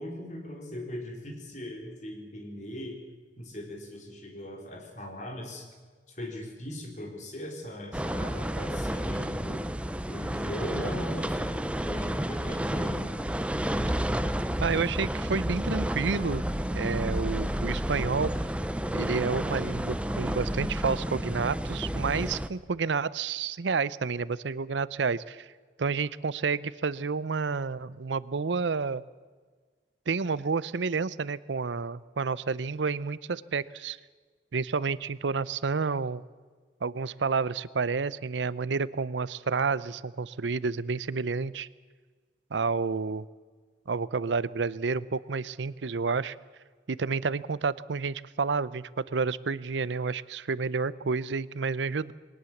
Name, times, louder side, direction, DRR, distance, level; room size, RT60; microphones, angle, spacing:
voice 1, 0.0-3.0 3.4-5.7 6.2-9.6 10.1-13.1, left 1 dB, 40° left, 2 dB, 3.9 m, -39 dB
sound 1, 7.9-22.5, equal, 5° right, 0.6 m, -31 dB
voice 2, 14.6-16.4 16.7-18.3 18.9-25.5 25.8-29.0 30.1-34.0 34.5-36.2 36.8-41.7 42.5-43.2 43.9-46.4 46.9-52.1, right 4 dB, 85° right, 19 dB, 0.6 m, -30 dB
20.5 x 19.0 x 7.2 m, 1.5 s
head